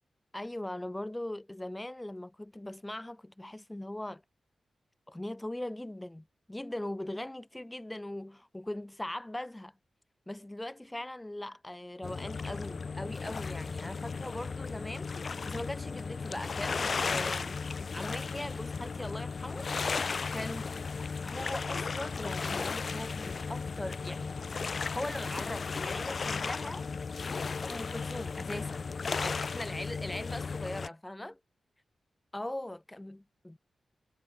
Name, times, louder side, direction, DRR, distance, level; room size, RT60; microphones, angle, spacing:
voice 1, 0.3-4.2 5.1-9.7 10.3-15.1 15.4-20.0 20.3-20.8 21.2-24.3 24.9-26.9 27.6-28.9 29.2-31.4 32.3-33.6, left 1 dB, 15° left, 1.3 m, -40 dB
sound 1, 12.0-30.9, left 5 dB, 55° left, 0.9 m, -35 dB
cardioid pair, 70°, 0 cm